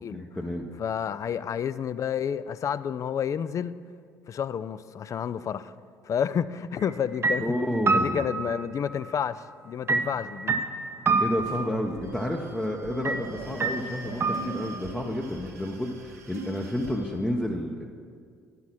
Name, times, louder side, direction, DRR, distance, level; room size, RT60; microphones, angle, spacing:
voice 1, 0.1-0.7 7.4-8.3 11.2-17.9, left 1 dB, 10° left, 1 dB, 0.7 m, -30 dB
voice 2, 0.8-3.7 4.3-5.7 6.0-7.6 7.9-10.6, left 8 dB, 40° left, 15 dB, 0.3 m, -30 dB
sound 1, 6.8-7.0 7.2-9.1 9.9-11.9 13.0-13.2 13.6-14.9, right 4 dB, 30° right, 0.6 m, -28 dB
sound 2, 11.1-17.2, right 2 dB, 80° right, 0.9 m, -42 dB
10.5 x 5.7 x 6.0 m, 2.1 s
hypercardioid pair, 55°, 8 cm